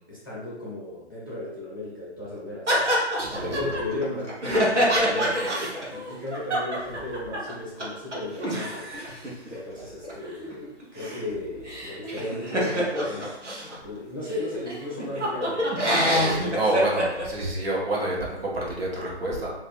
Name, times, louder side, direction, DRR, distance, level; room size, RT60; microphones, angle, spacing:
voice 1, 0.1-5.4 5.9-8.9 9.5-13.3 13.8-16.7, left 2 dB, 20° left, -8 dB, 0.5 m, -35 dB
sound 1, 2.7-7.5 7.8-7.9 8.1-13.7 14.3-14.4 14.7-17.3, equal, 85° right, 1.2 m, -26 dB
voice 2, 3.3-3.7 16.1-19.5, right 1 dB, 55° right, -4 dB, 1.2 m, -28 dB
2.6 x 2.3 x 4.1 m, 0.90 s
figure-of-eight pair, 150°, 35 cm